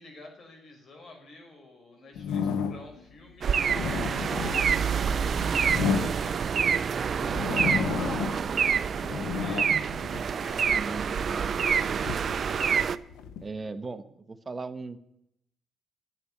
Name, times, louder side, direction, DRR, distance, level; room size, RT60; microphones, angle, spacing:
voice 1, 0.0-3.5 3.8-11.5, left 2 dB, 55° left, 2 dB, 5.4 m, -50 dB
sound 1, 2.1-3.0 3.5-6.7 7.2-8.5 8.9-10.8 11.4-13.5, left 6 dB, 90° left, 0.9 m, -32 dB
sound 2, 3.4-13.0, right 7 dB, 50° right, 0.6 m, -27 dB
voice 2, 10.7-11.5 13.4-15.0, right 3 dB, 25° right, 9 dB, 1.2 m, -38 dB
12.0 x 8.0 x 10.0 m, 0.77 s
cardioid pair, 90°, 0 cm